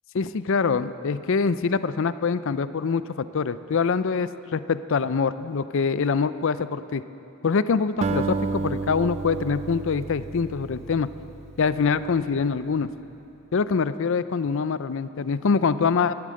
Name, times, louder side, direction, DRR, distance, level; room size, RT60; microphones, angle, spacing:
voice 1, 0.1-7.0 7.4-11.1 11.6-12.9 13.5-16.1, left 5 dB, 60° left, 14 dB, 0.5 m, -24 dB
Acoustic guitar, 8.0-12.5, right 4 dB, 30° right, 0.4 m, -32 dB
14.5 x 12.0 x 7.7 m, 2.8 s
head